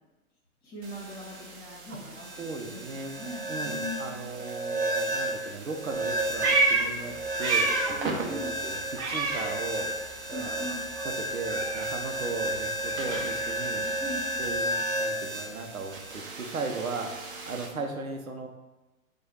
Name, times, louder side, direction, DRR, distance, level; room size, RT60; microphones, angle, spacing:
voice 1, 0.6-4.3 7.9-8.5 10.3-10.8 13.6-14.3, left 1 dB, 20° left, -4 dB, 1.5 m, -40 dB
sound 1, 0.8-17.7, right 1 dB, 40° right, 0.8 m, -33 dB
voice 2, 2.4-7.9 8.2-9.9 10.3-10.7 11.0-13.9 14.4-18.5, right 3 dB, 80° right, 4 dB, 0.7 m, -37 dB
Meow, 5.9-8.1 8.4-10.1 10.4-14.6, right 3 dB, 20° right, 1.2 m, -30 dB
4.7 x 2.4 x 4.1 m, 1.1 s
figure-of-eight pair, 110°, 41 cm